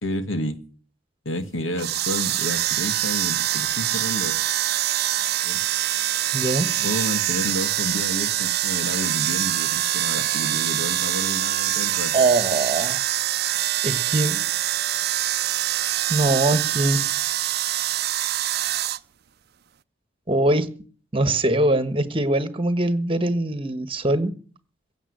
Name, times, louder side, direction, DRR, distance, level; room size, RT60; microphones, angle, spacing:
voice 1, 0.0-0.7 1.3-4.4 5.4-5.6 6.8-12.2, left 1 dB, 85° left, 10 dB, 1.9 m, -30 dB
sound 1, 1.7-19.0, right 13 dB, 55° right, 0.6 m, -24 dB
voice 2, 6.3-6.7 12.1-13.0 13.8-14.4 16.1-17.0 20.3-20.7 21.1-24.3, right 2 dB, 30° right, 13 dB, 1.4 m, -22 dB
16.0 x 7.3 x 10.0 m, 0.41 s
head